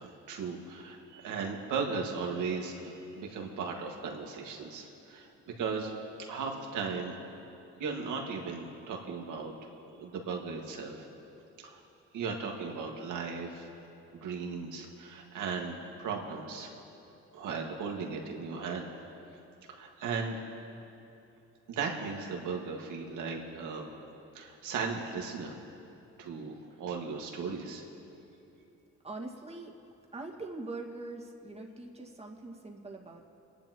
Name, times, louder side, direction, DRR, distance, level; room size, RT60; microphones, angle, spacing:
voice 1, 0.0-5.3 5.6-5.9 6.3-7.2 7.8-9.5 10.0-11.1 11.6-11.8 12.1-13.7 14.1-16.7 17.3-18.9 19.7-20.4 21.7-23.9 24.3-25.5 26.2-27.8, right 5 dB, 80° right, 0 dB, 2.0 m, -36 dB
voice 2, 29.0-29.7 30.1-33.2, right 2 dB, 20° right, -1 dB, 2.0 m, -42 dB
29.0 x 10.5 x 3.1 m, 2.9 s
cardioid pair, 90°, 30 cm